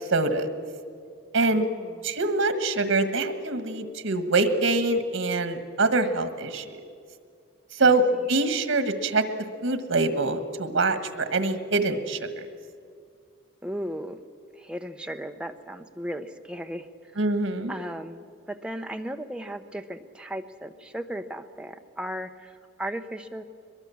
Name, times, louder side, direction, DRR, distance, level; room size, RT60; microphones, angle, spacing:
voice 1, 0.1-0.5 1.3-1.7 2.0-6.8 7.8-9.2 9.6-12.5 17.2-17.7, right 3 dB, 90° right, 9 dB, 1.6 m, -24 dB
voice 2, 1.4-2.1 7.8-8.2 13.6-14.2 14.5-16.9 17.7-23.4, equal, 5° right, 5 dB, 0.7 m, -36 dB
22.5 x 22.0 x 7.1 m, 2.2 s
head